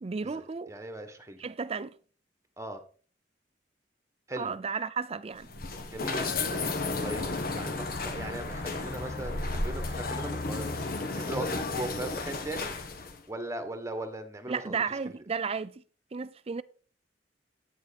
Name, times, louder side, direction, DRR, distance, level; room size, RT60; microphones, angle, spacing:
voice 1, 0.0-0.7 1.4-1.9 4.3-5.5 9.7-9.8 14.5-15.8 16.1-16.6, right 5 dB, 35° right, 0.5 m, -33 dB
voice 2, 0.7-1.4 2.6-2.8 4.3-4.5 5.9-6.3 7.0-10.7 11.1-12.7 13.3-14.8, right 1 dB, 15° right, 1.5 m, -38 dB
sound 1, 5.3-13.2, left 3 dB, 55° left, 1.6 m, -33 dB
9.4 x 9.4 x 4.3 m
head